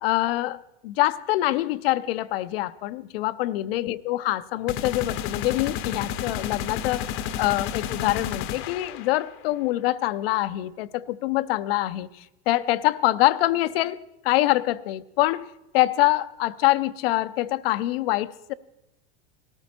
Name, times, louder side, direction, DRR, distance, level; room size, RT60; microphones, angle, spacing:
voice 1, 0.0-15.4 15.7-18.5, left 16 dB, 70° left, 0.7 m, -25 dB
sound 1, 4.7-9.4, left 9 dB, 45° left, 0.8 m, -31 dB
18.0 x 13.5 x 4.3 m
supercardioid pair, 130°, 31 cm